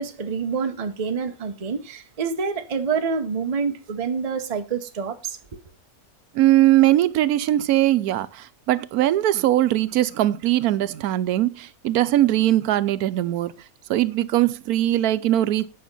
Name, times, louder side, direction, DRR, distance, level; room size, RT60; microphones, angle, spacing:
voice 1, 0.0-5.4, right 5 dB, 30° right, 0.8 m, -27 dB
voice 2, 6.3-13.5 13.9-15.7, right 14 dB, 90° right, 1.1 m, -20 dB
8.7 x 5.8 x 5.3 m
omnidirectional pair, 1.5 m